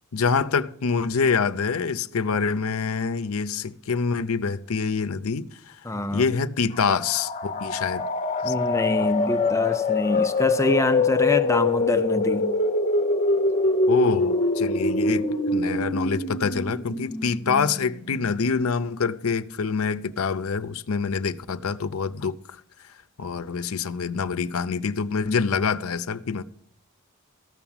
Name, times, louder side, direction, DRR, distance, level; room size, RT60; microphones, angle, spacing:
voice 1, 0.1-5.8 6.1-8.0 8.5-8.6 9.0-9.1 13.9-22.6 23.2-26.4, left 5 dB, 75° left, 0.6 m, -26 dB
voice 2, 5.9-6.2 8.4-12.5, left 2 dB, 15° left, 0.4 m, -25 dB
sound 1, 6.7-18.4, left 3 dB, 30° left, 0.8 m, -24 dB
14.0 x 5.9 x 7.1 m
head